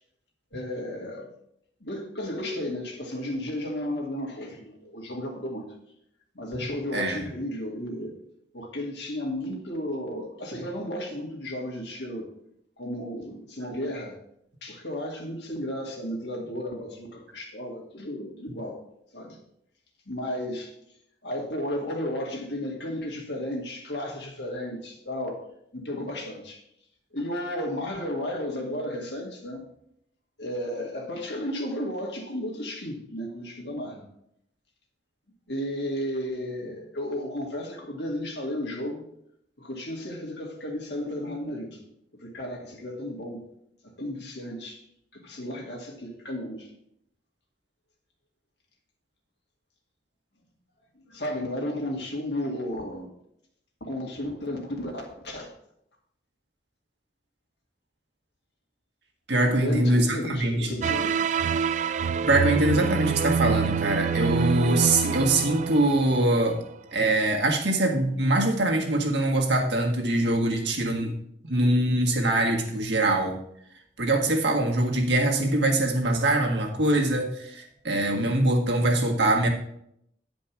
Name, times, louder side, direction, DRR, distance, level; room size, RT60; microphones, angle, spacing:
voice 1, 0.5-1.3 1.8-5.7 6.3-8.1 8.5-12.3 12.8-14.2 14.6-18.8 19.1-19.4 20.1-20.7 21.2-25.4 25.7-26.6 27.1-29.7 30.4-34.1 35.5-39.0 39.6-41.8 42.2-43.4 44.0-44.8 45.1-46.7 51.1-53.1 53.8-55.5 59.4-61.1, left 1 dB, 70° left, 0 dB, 2.2 m, -33 dB
voice 2, 6.9-7.3 59.3-60.7 62.2-66.6 66.9-71.2 71.5-73.4 74.0-79.5, right 1 dB, 75° right, 1 dB, 1.8 m, -23 dB
sound 1, 60.8-66.6, right 6 dB, 40° right, 0.3 m, -26 dB
9.7 x 5.2 x 5.9 m, 0.74 s
head